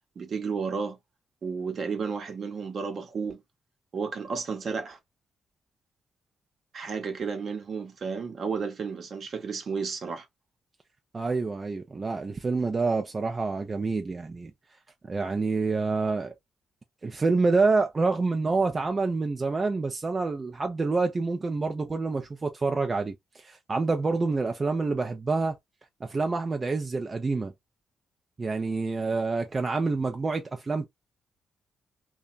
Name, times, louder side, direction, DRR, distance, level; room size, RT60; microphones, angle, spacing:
voice 1, 0.2-1.0 1.4-3.4 3.9-5.0 6.7-10.3, right 5 dB, 55° right, 0.9 m, -32 dB
voice 2, 11.1-14.5 15.1-16.3 17.0-25.6 26.0-27.5 28.4-30.9, right 3 dB, 35° right, 0.5 m, -27 dB
2.9 x 2.3 x 2.4 m
cardioid pair, 75°, 0 cm